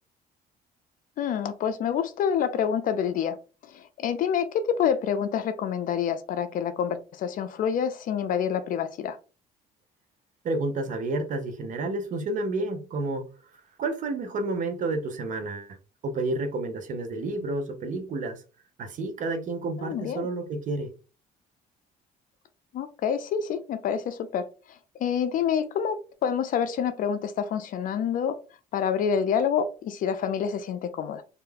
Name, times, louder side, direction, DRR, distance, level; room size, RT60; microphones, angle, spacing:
voice 1, 1.2-3.4 3.6-9.2 19.8-20.3 22.7-24.5 25.0-28.4 28.7-31.2, left 8 dB, 55° left, 0.4 m, -27 dB
voice 2, 10.4-13.3 13.8-15.8 16.0-18.4 18.8-20.9, right 2 dB, 50° right, 0.6 m, -30 dB
2.4 x 2.2 x 3.3 m
cardioid pair, 110°, 17 cm